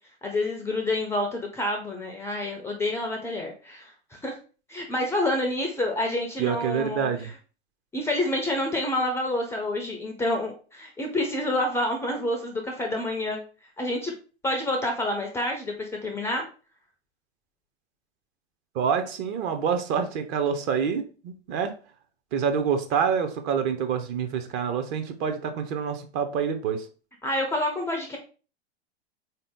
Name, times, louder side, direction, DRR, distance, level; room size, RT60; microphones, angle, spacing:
voice 1, 0.2-4.4 4.7-7.1 7.9-13.4 13.8-14.1 14.4-16.5 27.2-28.2, left 1 dB, 10° left, 2 dB, 0.4 m, -28 dB
voice 2, 6.4-7.3 18.7-21.8 22.3-26.9, right 7 dB, 35° right, 7 dB, 0.6 m, -27 dB
3.7 x 2.8 x 3.5 m, 0.36 s
figure-of-eight pair, 95°, 32 cm